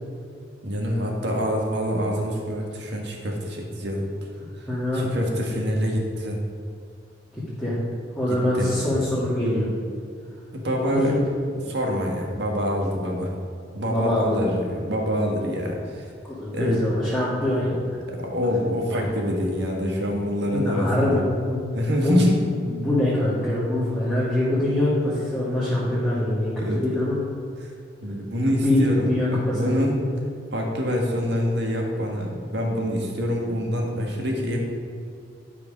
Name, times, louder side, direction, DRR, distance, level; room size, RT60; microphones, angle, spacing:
voice 1, 0.6-4.1 4.9-6.4 8.3-8.7 10.5-11.2 11.7-13.3 13.7-16.1 16.5-16.8 18.1-21.2 21.7-22.5 26.6-26.8 27.6-27.7 28.0-30.0 30.5-34.6, equal, 65° right, 0 dB, 1.7 m, -25 dB
voice 2, 4.7-5.1 7.3-7.8 8.2-9.7 10.9-11.1 13.9-14.5 16.2-18.0 19.0-19.1 20.5-21.6 22.0-22.2 22.6-27.2 28.5-29.8, left 1 dB, 5° left, -11 dB, 2.2 m, -24 dB
11.5 x 5.2 x 5.2 m, 2.3 s
head